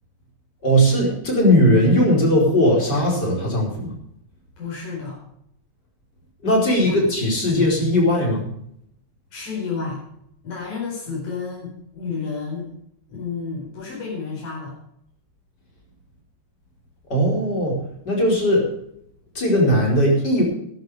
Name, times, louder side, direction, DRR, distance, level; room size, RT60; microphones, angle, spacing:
voice 1, 0.6-3.9 6.4-8.5 17.1-17.8 18.0-18.7 19.3-20.4, equal, 30° left, -2 dB, 5.0 m, -18 dB
voice 2, 4.6-5.2 6.8-7.0 7.5-7.7 9.3-10.0 10.4-12.6 13.2-14.8, left 5 dB, 75° left, -4 dB, 6.1 m, -31 dB
13.5 x 12.0 x 4.9 m, 0.71 s
omnidirectional pair, 3.5 m